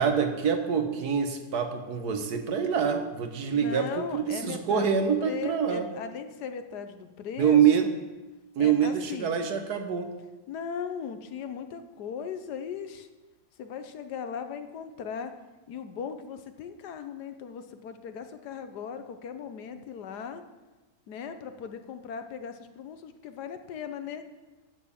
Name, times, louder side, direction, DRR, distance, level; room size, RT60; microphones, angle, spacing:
voice 1, 0.0-5.9 7.4-7.9 8.6-10.1, right 7 dB, 75° right, 6 dB, 1.6 m, -25 dB
voice 2, 3.5-7.9 8.6-9.4 10.5-13.1 13.6-15.3 15.7-20.4 21.1-24.2, left 7 dB, 80° left, 8 dB, 1.4 m, -38 dB
9.2 x 7.2 x 7.1 m, 1.2 s
omnidirectional pair, 1.7 m